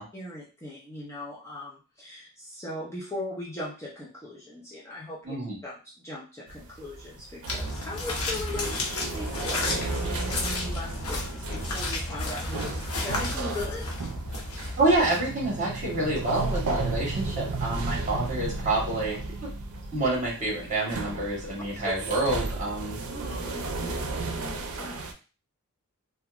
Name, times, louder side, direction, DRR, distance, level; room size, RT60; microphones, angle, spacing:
voice 1, 0.1-5.4 5.6-13.9 14.6-14.7 21.7-21.8 23.1-25.0, left 1 dB, 15° left, -6 dB, 0.5 m, -39 dB
voice 2, 5.2-5.6 14.8-19.5 19.9-23.0, right 2 dB, 35° right, -5 dB, 1.4 m, -27 dB
sound 1, 6.5-25.1, right 3 dB, 90° right, 0.5 m, -34 dB
sound 2, 7.5-15.6, left 2 dB, 75° left, 0.8 m, -32 dB
2.9 x 2.3 x 2.4 m, 0.35 s
head